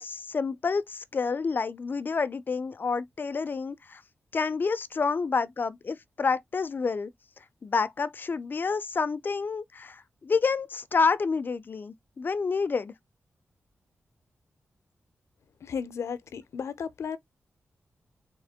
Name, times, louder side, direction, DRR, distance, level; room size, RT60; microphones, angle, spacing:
voice 1, 0.0-4.0 4.3-7.1 7.6-12.9, left 4 dB, 45° left, 0.5 m, -28 dB
voice 2, 15.6-17.2, left 6 dB, 85° left, 0.6 m, -34 dB
3.6 x 3.0 x 3.5 m
wide cardioid pair, 90°, 5 cm